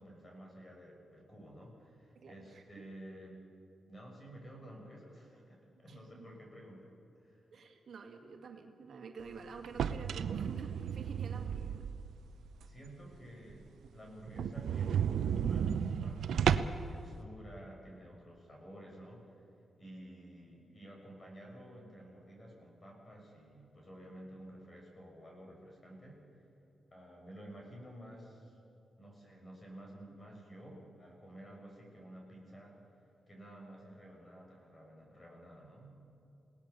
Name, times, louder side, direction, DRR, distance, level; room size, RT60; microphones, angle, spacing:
voice 1, 0.0-3.4 3.9-7.4 12.6-19.5 19.8-26.5 26.9-28.6 29.0-32.8 33.3-36.0, right 1 dB, 25° left, -1 dB, 7.0 m, -52 dB
voice 2, 2.1-2.9 5.9-6.3 7.5-11.8, right 5 dB, 65° right, 3 dB, 2.2 m, -49 dB
sound 1, 9.6-12.2 12.6-12.7 13.1-13.2 13.5-13.6 13.8-13.9 14.3-16.9, right 8 dB, 85° right, 0.7 m, -33 dB
28.0 x 18.5 x 7.1 m, 2.7 s
cardioid pair, 115°, 0 cm